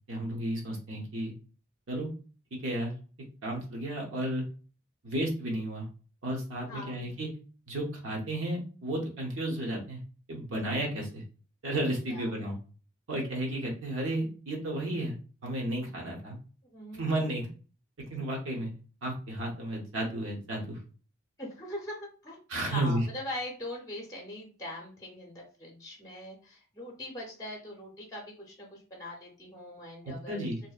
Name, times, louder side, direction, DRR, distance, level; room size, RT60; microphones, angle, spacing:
voice 1, 0.1-1.3 1.9-2.1 2.5-2.9 3.4-4.4 5.0-5.9 6.2-7.3 7.7-10.0 10.3-11.2 11.6-12.6 13.1-15.1 15.4-16.4 16.9-17.5 18.1-18.7 19.0-20.8 22.5-23.0 30.0-30.6, right 1 dB, 70° right, -1 dB, 0.7 m, -33 dB
voice 2, 6.7-7.2 12.1-12.3 16.7-17.1 21.4-22.4 22.7-30.5, left 1 dB, 15° left, -1 dB, 0.6 m, -41 dB
2.6 x 2.0 x 2.3 m, 0.37 s
head